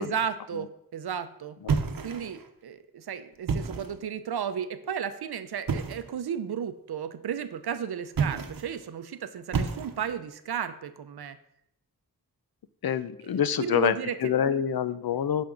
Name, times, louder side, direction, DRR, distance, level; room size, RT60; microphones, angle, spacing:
voice 1, 0.0-1.6 2.0-11.4 13.2-14.3, right 8 dB, 90° right, 11 dB, 0.7 m, -34 dB
sound 1, 1.7-2.5 3.3-4.0 5.7-6.1 8.1-8.8 9.5-10.2, right 5 dB, 65° right, 0.9 m, -30 dB
voice 2, 12.8-14.0 14.2-15.4, left 9 dB, 70° left, 14 dB, 0.6 m, -26 dB
11.5 x 5.3 x 3.8 m, 0.78 s
wide cardioid pair, 75°, 37 cm